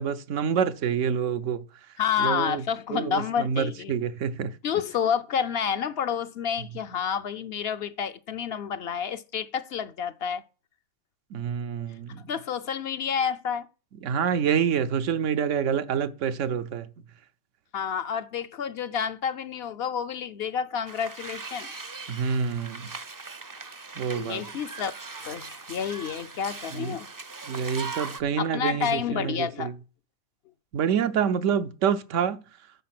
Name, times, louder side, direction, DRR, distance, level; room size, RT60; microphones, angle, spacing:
voice 1, 0.0-1.6 2.2-2.6 2.9-4.5 11.3-12.2 14.0-16.9 22.1-22.9 24.0-24.4 26.7-27.0 27.5-29.7 30.7-32.4, right 7 dB, 85° right, 1.1 m, -27 dB
voice 2, 2.0-3.9 4.6-10.4 12.3-13.7 17.7-21.7 24.1-24.9 25.2-27.1 28.4-29.7, left 7 dB, 60° left, 0.8 m, -29 dB
sound 1, 20.9-28.2, right 4 dB, 25° right, 0.4 m, -40 dB
9.4 x 6.4 x 6.0 m
omnidirectional pair, 1.2 m